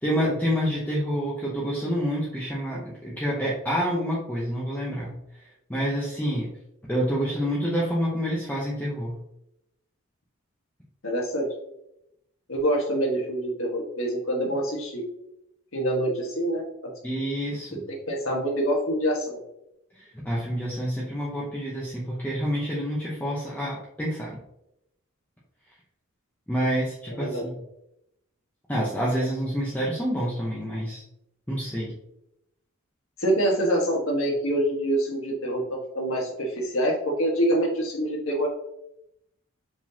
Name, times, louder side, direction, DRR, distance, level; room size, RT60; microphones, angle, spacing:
voice 1, 0.0-5.2 5.7-6.5 6.9-9.2 17.0-17.8 19.9-24.4 26.5-27.5 28.7-31.0 31.5-31.9, equal, 10° left, -6 dB, 0.8 m, -28 dB
voice 2, 11.0-11.5 12.5-15.0 15.7-16.7 17.7-19.4 27.2-27.4 33.2-38.5, right 1 dB, 75° left, -1 dB, 1.4 m, -26 dB
4.8 x 3.8 x 2.8 m, 0.82 s
head